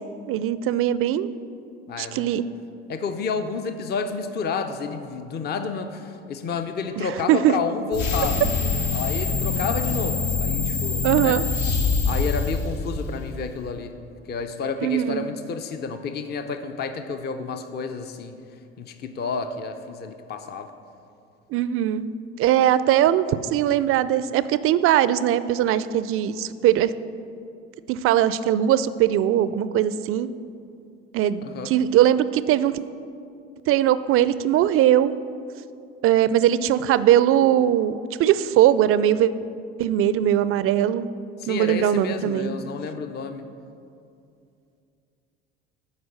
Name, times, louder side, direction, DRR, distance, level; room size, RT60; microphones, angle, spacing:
voice 1, 0.3-1.3 2.0-2.5 7.0-7.5 11.0-11.4 14.8-15.3 21.5-26.9 27.9-30.3 31.1-32.8 33.7-35.1 36.0-39.3 39.8-41.1 41.5-42.5, right 11 dB, 45° right, 15 dB, 0.4 m, -20 dB
voice 2, 1.9-2.3 2.9-8.4 8.9-11.4 12.1-13.9 14.3-18.4 18.8-20.7 31.4-31.7 41.4-43.5, left 5 dB, 35° left, 8 dB, 0.6 m, -30 dB
sound 1, 7.9-13.3, left 4 dB, 65° left, 1.0 m, -25 dB
8.1 x 4.9 x 6.4 m, 2.5 s
hypercardioid pair, 65°, 31 cm